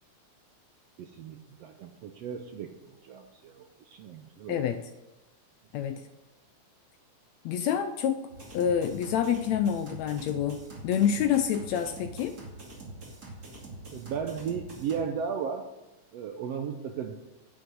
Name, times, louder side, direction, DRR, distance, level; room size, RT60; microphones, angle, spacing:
voice 1, 1.0-4.6 13.9-15.6 16.1-17.2, right 7 dB, 75° right, 5 dB, 1.5 m, -35 dB
voice 2, 4.5-4.8 5.7-6.0 7.4-8.2 8.5-12.4, left 8 dB, 80° left, 9 dB, 1.6 m, -27 dB
sound 1, 8.3-15.0, right 2 dB, 30° right, 2.7 m, -45 dB
11.0 x 5.9 x 7.9 m, 1.0 s
omnidirectional pair, 3.6 m